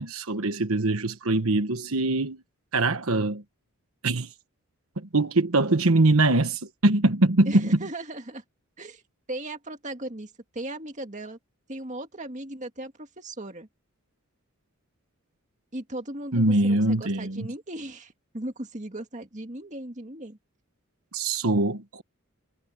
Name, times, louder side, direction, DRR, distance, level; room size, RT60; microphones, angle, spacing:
voice 1, 0.0-2.4 2.7-3.4 4.0-4.3 5.0-7.8 16.3-17.5 21.1-22.0, right 2 dB, 80° right, 1.3 m, -23 dB
voice 2, 7.5-8.4 8.8-9.0 9.3-11.4 11.7-13.7 15.7-20.4, right 1 dB, 35° right, 2.1 m, -37 dB
head